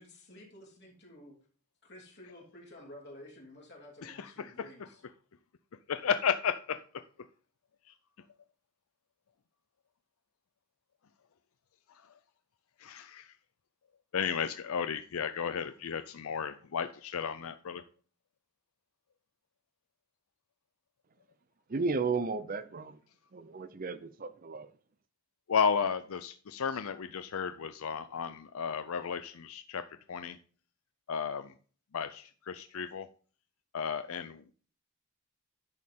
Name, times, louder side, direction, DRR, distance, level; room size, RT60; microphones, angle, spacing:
voice 1, 0.0-1.3 1.8-5.0, left 1 dB, 50° left, 2.9 m, -52 dB
voice 2, 4.0-4.7 5.9-6.8 7.9-8.0 12.8-13.3 14.1-17.8 25.5-29.8 30.1-30.4 31.1-31.5 31.9-33.1 33.7-34.5, left 6 dB, 75° left, 0.5 m, -33 dB
voice 3, 21.7-23.0 23.3-24.7, right 4 dB, 40° right, 0.5 m, -34 dB
10.5 x 6.4 x 3.6 m
head